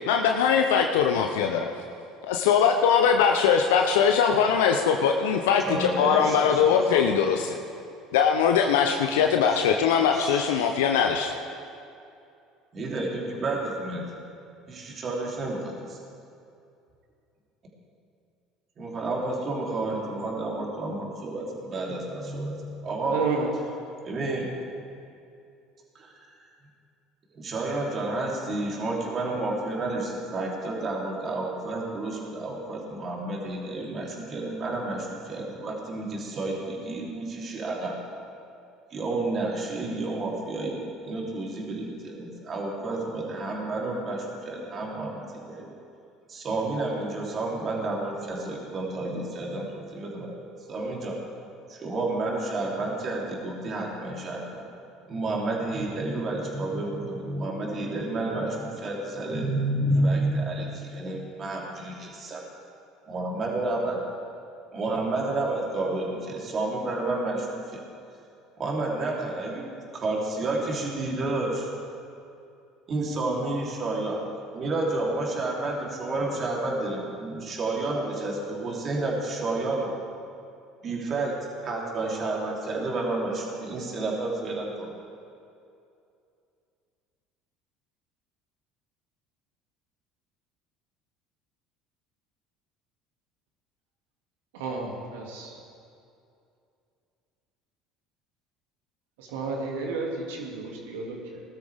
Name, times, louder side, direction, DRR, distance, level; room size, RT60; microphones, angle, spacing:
voice 1, 0.1-1.7 2.2-7.5 8.1-11.3, left 7 dB, 75° left, 4 dB, 0.7 m, -21 dB
voice 2, 5.6-7.2 10.0-10.5 12.7-14.0 14.7-16.0 18.8-23.2 24.0-24.5 26.0-26.5 27.3-38.0 38.9-45.7 46.3-51.2 51.7-54.6 55.1-62.4 63.1-64.0 64.7-67.5 67.7-67.8 68.6-71.5 72.9-74.3 74.5-79.9 80.8-84.9, right 2 dB, 40° right, -2 dB, 3.3 m, -30 dB
voice 3, 23.0-23.5 94.5-95.6 99.2-101.4, right 4 dB, 75° right, -1 dB, 2.5 m, -31 dB
19.5 x 13.0 x 3.6 m, 2.6 s
hypercardioid pair, 70°, 0 cm